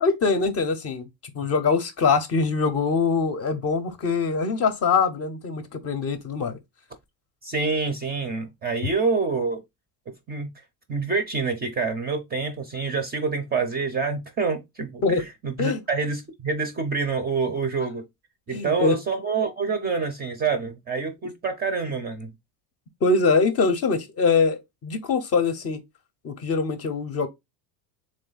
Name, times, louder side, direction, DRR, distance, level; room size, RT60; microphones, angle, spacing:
voice 1, 0.0-1.1 1.3-6.6 15.0-15.3 15.6-15.8 18.5-19.0 23.0-25.8 26.2-27.3, left 4 dB, 30° left, 0.6 m, -23 dB
voice 2, 7.4-9.6 10.3-10.5 10.9-15.2 15.4-18.0 18.5-22.3, right 4 dB, 20° right, 0.5 m, -27 dB
3.6 x 3.3 x 3.9 m
supercardioid pair, 130°, 49 cm